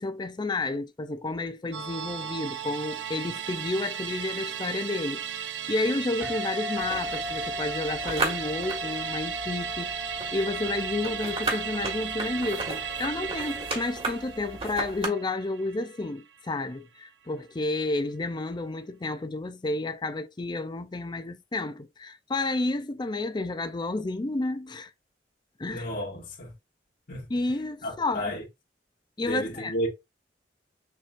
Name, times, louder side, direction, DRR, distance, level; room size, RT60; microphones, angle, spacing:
voice 1, 0.0-24.9 25.6-25.9 27.3-28.4 29.2-29.7, left 2 dB, 25° left, 0.4 m, -31 dB
Musical instrument, 1.7-16.4 16.7-16.8, right 9 dB, 85° right, 0.5 m, -36 dB
sound 1, 6.2-15.3, left 2 dB, 10° right, 0.8 m, -39 dB
sound 2, 6.8-15.1, right 2 dB, 35° right, 1.6 m, -36 dB
voice 2, 25.7-26.5 27.1-27.3 27.8-28.4 29.2-29.9, equal, 55° left, 1.9 m, -32 dB
6.7 x 3.1 x 2.5 m
head